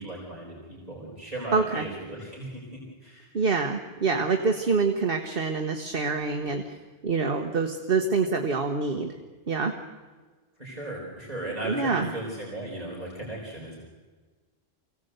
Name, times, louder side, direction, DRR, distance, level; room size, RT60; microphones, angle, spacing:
voice 1, 0.0-3.3 10.6-13.8, right 1 dB, 35° right, -4 dB, 4.6 m, -36 dB
voice 2, 1.5-1.9 3.3-6.6 7.0-9.1 9.5-9.7 11.7-12.1, right 4 dB, 55° right, 5 dB, 1.3 m, -26 dB
24.5 x 17.0 x 8.0 m, 1.4 s
omnidirectional pair, 1.1 m